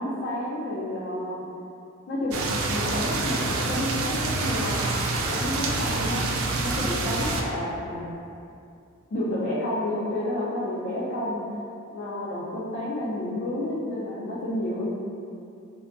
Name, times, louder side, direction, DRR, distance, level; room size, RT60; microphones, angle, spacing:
voice 1, 0.0-1.4 2.1-4.8 5.2-6.3 6.6-8.0 9.1-11.5 11.9-14.9, left 1 dB, 50° left, -8 dB, 0.4 m, -30 dB
sound 1, 2.3-7.4, right 3 dB, 80° right, 0.3 m, -27 dB
2.7 x 2.2 x 2.4 m, 2.5 s
head